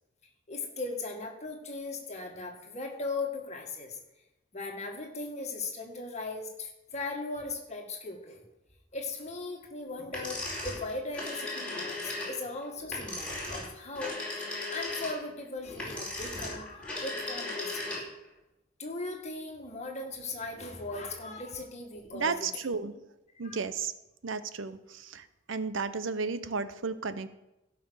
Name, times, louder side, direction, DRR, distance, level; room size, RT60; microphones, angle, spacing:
voice 1, 0.5-4.0 4.5-8.4 8.9-14.2 14.7-18.1 18.8-22.3 22.8-22.9 23.4-23.6, left 3 dB, 35° left, 2 dB, 2.0 m, -38 dB
sound 1, 10.1-18.3, left 2 dB, 5° left, 4.3 m, -37 dB
voice 2, 22.1-23.0 23.4-23.9 24.2-27.3, right 4 dB, 85° right, 13 dB, 0.8 m, -33 dB
16.0 x 5.8 x 6.5 m, 0.92 s
head